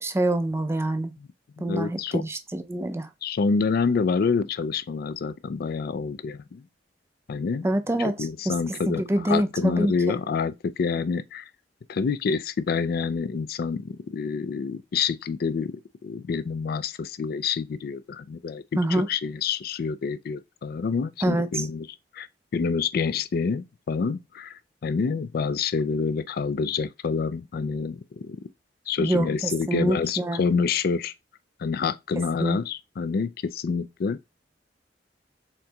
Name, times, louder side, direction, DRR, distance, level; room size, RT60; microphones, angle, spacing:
voice 1, 0.0-1.1 1.6-3.1 7.6-8.6 8.9-10.2 18.8-19.1 21.2-21.7 29.0-30.4 32.4-32.6, right 1 dB, 15° right, 0.4 m, -26 dB
voice 2, 1.6-2.2 3.2-6.7 7.3-7.7 8.0-11.5 11.9-21.9 22.1-22.3 22.5-28.4 28.9-31.1 31.6-34.2, left 5 dB, 55° left, 0.3 m, -27 dB
4.3 x 3.7 x 2.2 m
head